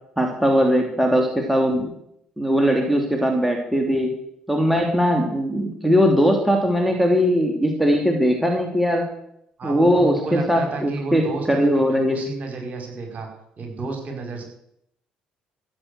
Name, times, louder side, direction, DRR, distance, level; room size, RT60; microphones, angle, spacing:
voice 1, 0.2-1.9 2.4-4.2 4.5-9.1 9.6-12.2, equal, 5° right, 2 dB, 2.9 m, -20 dB
voice 2, 9.6-13.3 13.6-14.4, right 3 dB, 40° right, 2 dB, 4.9 m, -31 dB
15.0 x 8.0 x 8.1 m, 0.74 s
figure-of-eight pair, 50°, 4 cm